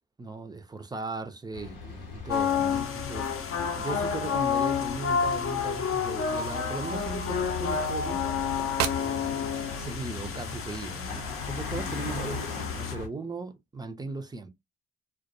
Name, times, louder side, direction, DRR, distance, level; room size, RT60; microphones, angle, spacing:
voice 1, 0.2-3.3 3.8-8.3 8.9-9.5 9.8-14.5, right 3 dB, 15° right, 0.4 m, -38 dB
sound 1, 1.5-13.1, left 5 dB, 80° left, 0.8 m, -39 dB
sound 2, 2.3-12.9, left 6 dB, 50° left, 0.6 m, -30 dB
sound 3, 4.7-12.3, right 8 dB, 70° right, 0.5 m, -41 dB
2.2 x 2.1 x 2.6 m
hypercardioid pair, 50°, 29 cm